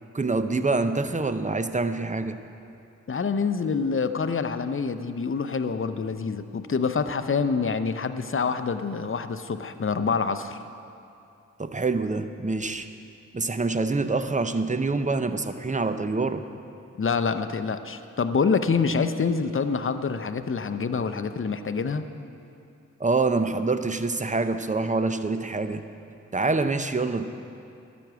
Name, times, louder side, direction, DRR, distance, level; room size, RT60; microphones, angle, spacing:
voice 1, 0.1-2.4 11.6-12.9 13.3-16.4 23.0-25.8 26.3-27.2, right 3 dB, 25° right, 9 dB, 0.7 m, -26 dB
voice 2, 3.1-10.6 17.0-22.1, left 5 dB, 40° left, 10 dB, 0.6 m, -26 dB
12.0 x 6.1 x 8.0 m, 2.6 s
cardioid pair, 40°, 31 cm